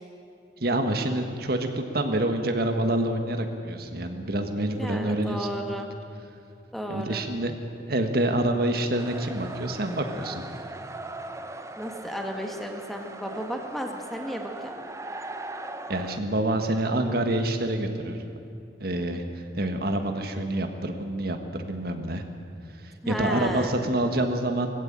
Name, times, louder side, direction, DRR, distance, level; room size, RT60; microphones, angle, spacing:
voice 1, 0.6-5.5 6.9-7.6 7.9-10.4 15.9-18.2 18.8-19.2 19.5-22.2 22.8-24.7, right 1 dB, 55° right, 6 dB, 1.6 m, -27 dB
voice 2, 4.8-5.9 6.7-7.2 11.8-14.8 23.0-23.8, equal, ahead, 2 dB, 1.8 m, -33 dB
sound 1, 8.9-16.2, right 2 dB, 15° right, 0.8 m, -39 dB
19.5 x 15.5 x 8.9 m, 2.6 s
head